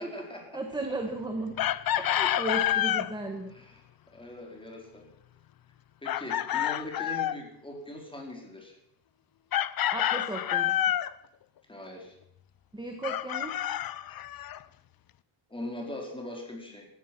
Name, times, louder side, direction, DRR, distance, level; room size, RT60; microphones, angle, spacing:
voice 1, 0.0-0.6 2.6-2.8 3.5-3.8 4.1-5.1 6.0-8.8 11.7-12.2 15.5-16.9, left 1 dB, 10° left, 0 dB, 4.3 m, -41 dB
voice 2, 0.5-1.6 2.0-3.5 9.9-10.8 12.7-13.7, right 2 dB, 10° right, 4 dB, 1.5 m, -35 dB
Chicken rooster, 1.6-3.1 6.1-7.4 9.5-11.1 13.0-14.6, left 12 dB, 45° left, 0.6 m, -28 dB
17.5 x 13.5 x 6.0 m, 0.75 s
cardioid pair, 155°, 49 cm